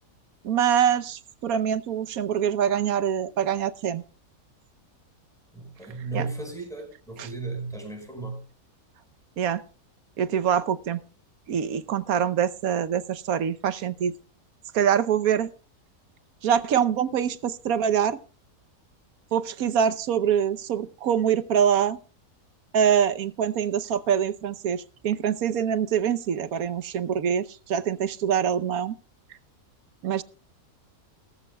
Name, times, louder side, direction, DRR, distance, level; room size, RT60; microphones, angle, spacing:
voice 1, 0.4-4.0 6.1-6.3 7.2-7.3 9.4-9.6 10.2-11.0 11.5-14.1 14.7-15.5 16.4-18.2 19.3-22.0 22.7-28.9 30.0-30.2, right 8 dB, 70° right, 1.2 m, -24 dB
voice 2, 5.5-8.4, right 3 dB, ahead, 4.9 m, -35 dB
18.5 x 14.0 x 2.2 m
omnidirectional pair, 1.7 m